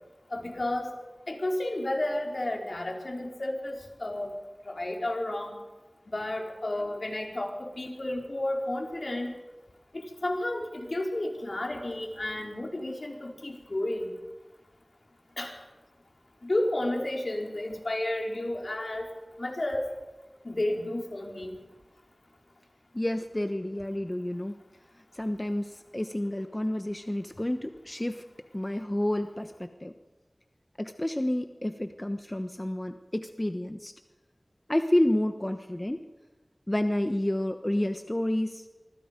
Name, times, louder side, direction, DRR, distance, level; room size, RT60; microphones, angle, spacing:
voice 1, 0.3-0.9 1.3-4.3 4.7-5.5 6.1-9.3 9.9-14.1 15.4-15.6 16.4-19.1 19.4-19.9 20.4-21.5, left 1 dB, 65° left, 1 dB, 4.3 m, -32 dB
voice 2, 22.9-24.5 25.1-28.2 28.5-29.9 30.8-33.9 34.7-36.0 36.7-38.6, left 1 dB, 25° left, 7 dB, 1.1 m, -29 dB
25.0 x 24.5 x 5.3 m, 1.2 s
wide cardioid pair, 45°, 0 cm